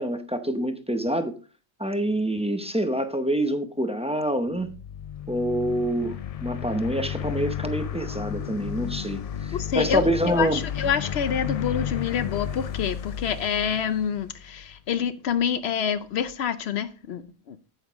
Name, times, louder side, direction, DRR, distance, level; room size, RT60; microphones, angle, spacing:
voice 1, 0.0-1.4 1.8-4.7 5.3-10.6, right 1 dB, 5° right, 0.6 m, -26 dB
sound 1, 4.5-14.7, left 9 dB, 55° left, 0.4 m, -33 dB
voice 2, 9.5-10.0 10.3-17.6, left 8 dB, 75° left, 0.9 m, -27 dB
8.9 x 8.2 x 3.5 m
omnidirectional pair, 1.1 m